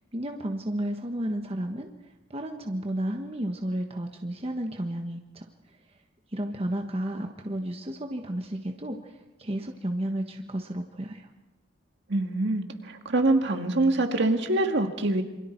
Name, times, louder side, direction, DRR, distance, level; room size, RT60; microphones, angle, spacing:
voice 1, 0.1-1.9 2.3-5.4 6.3-11.3, right 1 dB, 30° right, 3 dB, 1.3 m, -32 dB
voice 2, 12.1-15.2, right 2 dB, 60° right, 5 dB, 2.0 m, -25 dB
28.0 x 25.5 x 4.6 m, 1.0 s
head